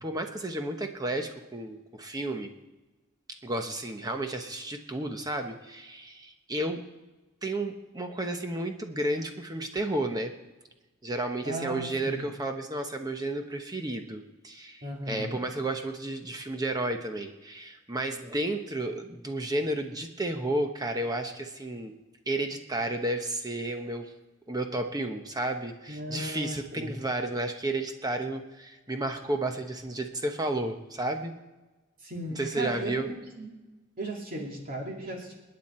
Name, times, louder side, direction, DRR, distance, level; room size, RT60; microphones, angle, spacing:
voice 1, 0.0-2.5 3.4-6.8 7.4-10.4 11.0-21.9 22.3-24.1 24.5-31.3 32.3-33.1, right 1 dB, 20° right, 5 dB, 1.0 m, -32 dB
voice 2, 11.4-12.3 14.8-15.4 25.9-26.9 32.0-33.0 33.4-33.5 34.0-35.4, right 1 dB, 45° right, -1 dB, 2.6 m, -36 dB
28.5 x 9.6 x 4.4 m, 1.2 s
head